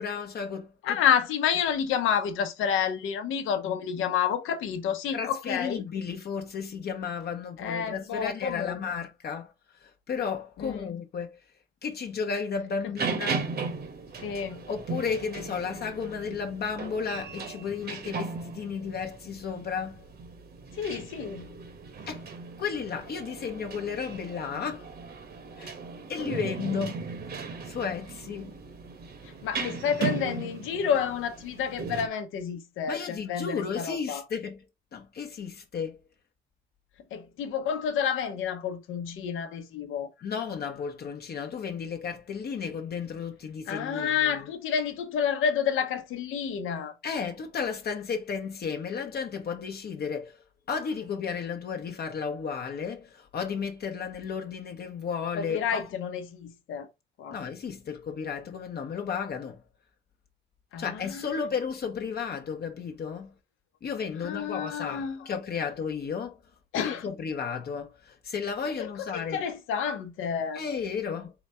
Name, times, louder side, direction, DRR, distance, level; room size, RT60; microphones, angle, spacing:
voice 1, 0.0-1.0 5.1-9.5 9.8-11.4 11.8-13.5 14.7-20.1 22.1-22.3 22.6-24.9 25.6-25.7 26.1-27.0 27.6-28.6 32.9-34.6 34.9-36.0 40.2-44.5 47.0-55.9 57.3-59.6 60.8-63.3 63.8-66.4 66.7-69.4 70.5-71.3, left 6 dB, 55° left, 0.8 m, -33 dB
voice 2, 0.8-5.8 7.6-9.0 10.6-10.8 14.2-14.6 20.7-21.5 29.2-34.2 37.1-40.1 43.7-47.0 55.4-56.9 57.2-57.4 60.7-61.5 64.2-65.3 66.7-67.1 68.8-70.6, left 7 dB, 85° left, 0.8 m, -29 dB
sound 1, 13.0-32.1, right 5 dB, 50° right, 1.0 m, -37 dB
3.9 x 2.3 x 4.2 m
cardioid pair, 90°, 20 cm